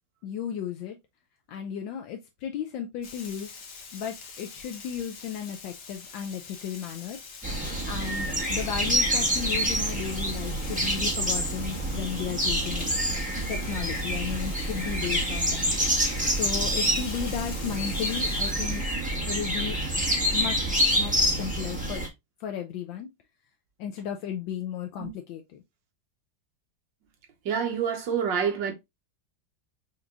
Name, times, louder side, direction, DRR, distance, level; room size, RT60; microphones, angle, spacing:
voice 1, 0.2-1.0 1.5-3.5 3.9-7.2 7.9-12.9 13.5-15.7 16.3-18.8 19.3-19.8 20.3-22.1 22.4-23.1 23.8-25.4, left 9 dB, 75° left, 1.3 m, -34 dB
Frying (food), 3.0-18.8, left 5 dB, 60° left, 1.5 m, -44 dB
sound 1, 7.4-22.1, right 1 dB, 5° right, 1.2 m, -27 dB
voice 2, 27.4-28.7, right 7 dB, 70° right, 1.7 m, -27 dB
5.8 x 2.8 x 2.4 m
omnidirectional pair, 2.1 m